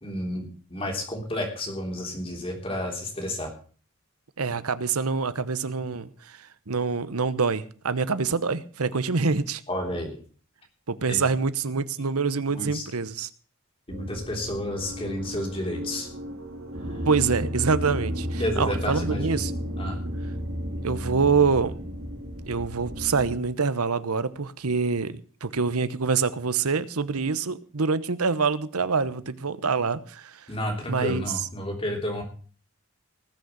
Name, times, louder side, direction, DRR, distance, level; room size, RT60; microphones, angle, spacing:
voice 1, 0.0-3.5 9.7-10.2 11.1-11.2 12.5-12.8 13.9-16.1 18.4-19.3 19.8-20.0 30.5-32.2, left 1 dB, 25° left, 3.5 m, -31 dB
voice 2, 4.4-6.4 6.7-9.6 10.9-13.3 17.0-19.5 20.8-21.7 22.5-30.4 30.9-31.4, right 5 dB, 85° right, 1.0 m, -26 dB
sound 1, 13.9-23.3, equal, 65° right, 2.5 m, -33 dB
19.5 x 6.6 x 7.2 m
head